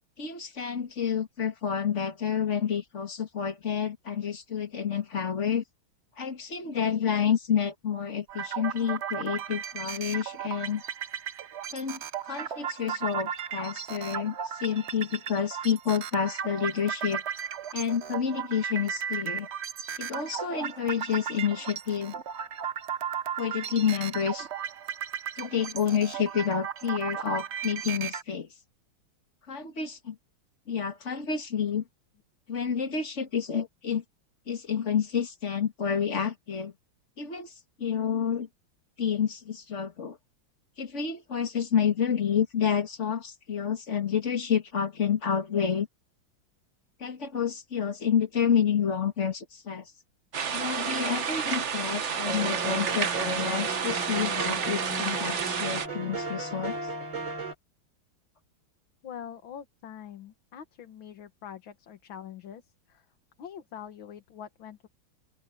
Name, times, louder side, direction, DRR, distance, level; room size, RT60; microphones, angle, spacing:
voice 1, 0.2-5.6 6.2-10.8 11.7-12.0 12.3-14.3 14.6-17.2 17.7-19.5 20.0-22.1 23.4-24.5 25.4-28.5 29.5-30.2 30.7-31.8 32.5-34.0 34.5-36.7 37.2-37.5 37.8-38.5 39.0-40.2 40.8-45.9 47.0-49.8 50.5-56.8, left 7 dB, 35° left, 2.1 m, -29 dB
sound 1, 8.3-28.2, right 8 dB, 85° right, 0.6 m, -35 dB
sound 2, 50.3-55.9, right 7 dB, 45° right, 1.1 m, -30 dB
sound 3, 52.2-57.5, right 2 dB, 65° right, 4.0 m, -35 dB
voice 2, 59.0-62.6 63.4-64.9, left 8 dB, 70° left, 2.2 m, -44 dB
open air
omnidirectional pair, 2.3 m